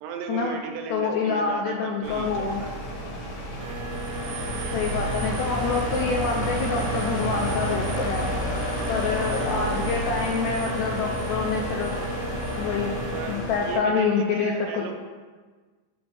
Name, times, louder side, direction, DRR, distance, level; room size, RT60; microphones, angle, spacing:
voice 1, 0.0-2.8 9.4-9.9 13.1-14.9, right 5 dB, 90° right, 4 dB, 2.2 m, -35 dB
voice 2, 0.9-2.6 4.7-8.3 8.9-12.0 12.6-13.0 13.3-14.9, left 5 dB, 80° left, 0 dB, 1.7 m, -26 dB
sound 1, 2.0-13.8, equal, 60° left, 1.3 m, -30 dB
sound 2, 3.6-13.4, right 3 dB, 75° right, 1.7 m, -36 dB
6.8 x 3.2 x 5.7 m, 1.4 s
omnidirectional pair, 3.7 m